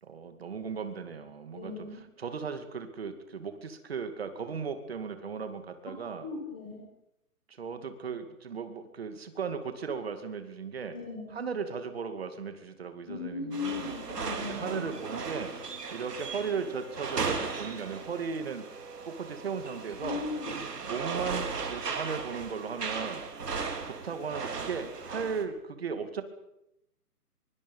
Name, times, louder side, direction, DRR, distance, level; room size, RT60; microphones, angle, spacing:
voice 1, 0.0-1.7 2.2-6.3 7.5-11.0 11.3-13.9 14.5-15.5 15.9-18.7 19.0-20.3 20.9-23.2 23.8-26.2, right 6 dB, 40° right, 8 dB, 2.4 m, -36 dB
voice 2, 1.5-2.0 6.2-6.8 10.9-11.4 13.1-14.9 20.0-20.5, left 4 dB, 5° left, -2 dB, 1.0 m, -37 dB
sound 1, 13.5-25.4, right 5 dB, 80° right, 3.9 m, -37 dB
24.5 x 23.5 x 5.5 m, 0.84 s
hypercardioid pair, 175°, 47 cm